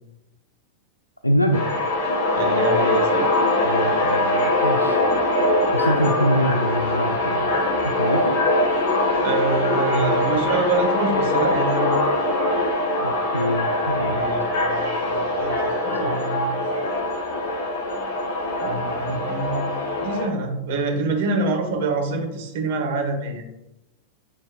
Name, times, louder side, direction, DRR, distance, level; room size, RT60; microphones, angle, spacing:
voice 1, 1.2-1.6 3.6-5.0 5.7-7.5 7.8-8.4 13.0-14.2, equal, 85° left, 6 dB, 0.3 m, -24 dB
sound 1, 1.5-20.3, left 1 dB, 45° left, 2.3 m, -22 dB
voice 2, 2.3-3.4 9.2-12.0 14.0-16.5 18.6-19.7 20.0-23.4, right 3 dB, 50° right, 2 dB, 1.4 m, -26 dB
8.4 x 4.9 x 2.5 m, 0.93 s
figure-of-eight pair, 90°, 0 cm